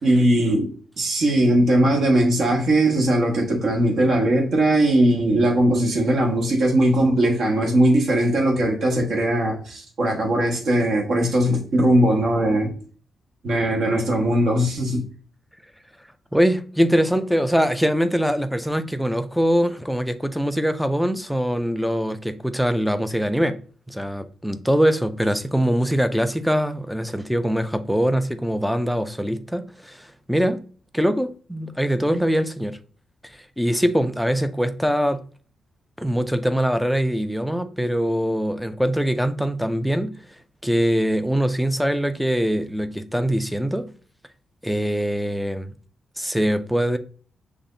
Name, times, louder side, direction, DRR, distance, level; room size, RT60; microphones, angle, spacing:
voice 1, 0.0-12.7 13.4-15.0, right 1 dB, 55° right, 1.4 m, -19 dB
voice 2, 16.3-23.6 23.9-30.6 30.9-32.8 33.6-35.2 36.0-40.1 40.6-43.9 44.6-45.7 46.2-47.0, equal, ahead, 0.3 m, -22 dB
5.9 x 3.5 x 2.6 m
wide cardioid pair, 175°, 0 cm